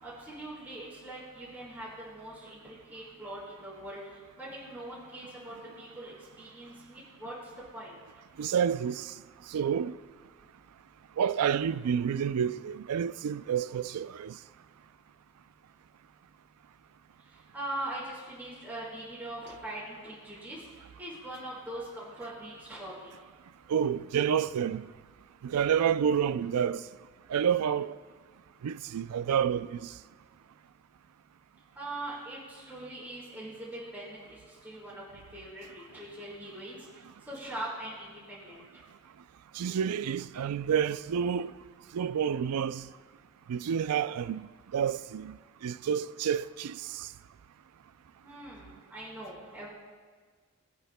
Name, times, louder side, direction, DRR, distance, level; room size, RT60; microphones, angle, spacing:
voice 1, 0.0-4.0 4.4-7.4 7.7-7.9 17.5-20.6 21.0-23.1 31.8-36.8 37.3-38.6 48.2-49.7, right 1 dB, 5° right, 3.6 m, -42 dB
voice 2, 8.4-9.1 9.5-10.0 11.2-14.4 23.7-24.9 25.4-26.9 27.3-28.0 28.6-29.9 39.5-41.5 41.9-42.9 43.5-47.1, right 8 dB, 90° right, 0.4 m, -29 dB
22.0 x 9.0 x 2.2 m
head